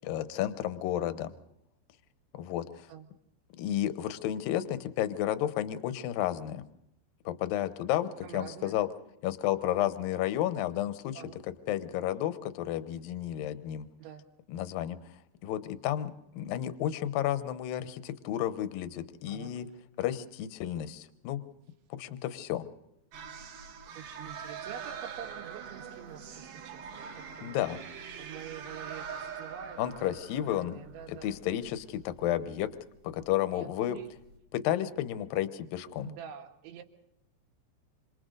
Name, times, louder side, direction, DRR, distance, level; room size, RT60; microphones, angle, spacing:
voice 1, 0.1-1.3 2.3-2.9 3.6-6.7 7.3-8.9 9.2-11.2 11.7-13.9 14.5-15.1 15.4-19.7 20.0-21.4 22.0-22.7 27.4-27.8 29.8-30.7 31.1-32.7 33.0-34.0 34.5-36.1, left 12 dB, 70° left, 12 dB, 2.2 m, -32 dB
voice 2, 8.2-8.8 11.2-11.4 14.0-14.3 19.3-19.5 24.0-27.8 28.2-31.4 32.3-32.7 33.5-34.1 36.0-36.8, right 9 dB, 80° right, 4 dB, 4.0 m, -47 dB
sound 1, 23.1-34.4, right 7 dB, 60° right, 3.4 m, -44 dB
28.0 x 26.5 x 4.0 m, 0.79 s
omnidirectional pair, 5.4 m